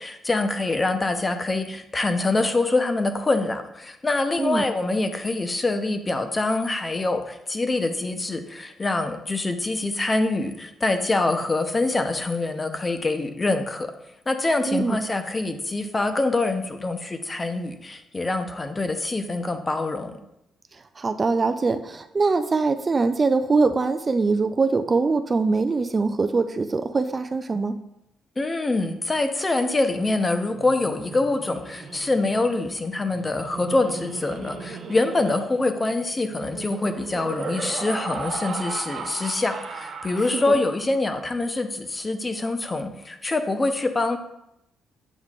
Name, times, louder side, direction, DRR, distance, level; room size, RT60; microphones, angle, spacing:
voice 1, 0.0-13.9 14.3-20.2 28.4-44.2, left 2 dB, 25° left, 7 dB, 0.6 m, -25 dB
voice 2, 14.7-15.0 21.0-27.8 40.3-40.4, right 4 dB, 30° right, 8 dB, 0.3 m, -23 dB
Laughter, 30.5-40.9, right 4 dB, 60° right, 0.8 m, -37 dB
8.0 x 5.6 x 2.4 m, 0.82 s
cardioid pair, 90°, 0 cm